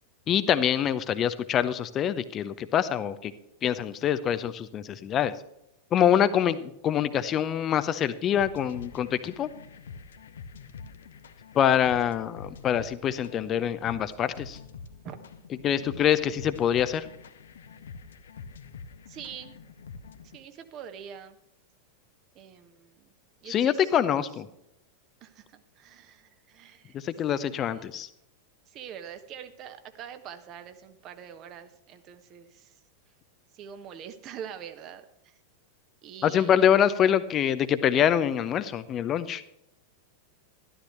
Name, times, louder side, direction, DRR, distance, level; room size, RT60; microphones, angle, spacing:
voice 1, 0.3-3.3 3.6-5.3 5.9-9.5 11.5-14.6 15.6-17.1 23.5-24.5 26.9-28.1 36.2-39.4, left 9 dB, 30° left, 12 dB, 0.6 m, -25 dB
sound 1, 8.4-20.4, left 5 dB, 65° left, 0.9 m, -46 dB
voice 2, 19.1-19.6 20.3-21.4 22.3-23.1 23.4-24.3 25.2-27.0 27.5-27.9 28.7-32.8 33.5-35.4 36.0-36.6, right 8 dB, 35° right, 8 dB, 1.2 m, -44 dB
12.5 x 12.5 x 3.2 m, 0.81 s
figure-of-eight pair, 90°, 0 cm